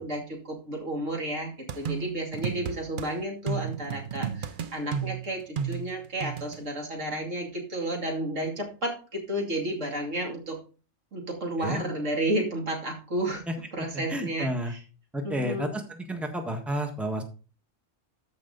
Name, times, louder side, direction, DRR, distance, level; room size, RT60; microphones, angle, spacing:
voice 1, 0.0-10.6 11.1-13.4 13.7-14.8 15.2-15.7, right 1 dB, 90° right, 1 dB, 3.0 m, -32 dB
sound 1, 1.7-3.1 3.5-6.6, right 8 dB, 50° right, 0.8 m, -33 dB
voice 2, 14.1-14.7 15.1-17.2, equal, ahead, 5 dB, 1.4 m, -31 dB
13.5 x 5.4 x 3.9 m, 0.35 s
omnidirectional pair, 1.3 m